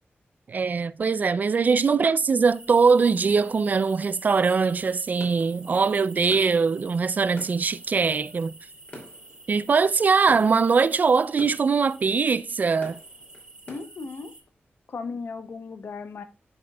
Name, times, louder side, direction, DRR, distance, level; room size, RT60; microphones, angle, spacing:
voice 1, 0.5-8.5 9.5-13.0, right 5 dB, 45° right, 0.3 m, -22 dB
sound 1, 2.5-14.4, right 2 dB, 20° right, 1.7 m, -48 dB
sound 2, 5.2-13.8, left 1 dB, 40° left, 2.6 m, -48 dB
voice 2, 13.7-14.3 14.9-16.2, left 4 dB, 60° left, 0.9 m, -36 dB
11.0 x 5.3 x 2.2 m
wide cardioid pair, 165°, 4 cm